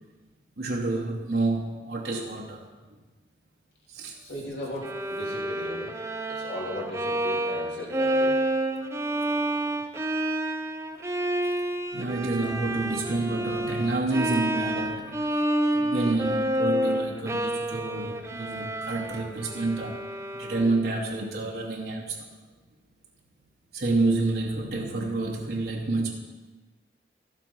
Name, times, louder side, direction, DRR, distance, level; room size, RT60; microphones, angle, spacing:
voice 1, 0.6-2.6 3.9-4.2 11.9-15.2 15.7-20.0 20.3-22.3 23.7-26.1, right 2 dB, 60° right, -1 dB, 1.0 m, -28 dB
voice 2, 4.2-5.9 6.3-8.4 10.2-10.3, left 1 dB, 75° left, -4 dB, 3.1 m, -37 dB
Bowed string instrument, 4.8-20.9, right 1 dB, 15° right, 0.5 m, -29 dB
12.5 x 7.5 x 5.6 m, 1.3 s
head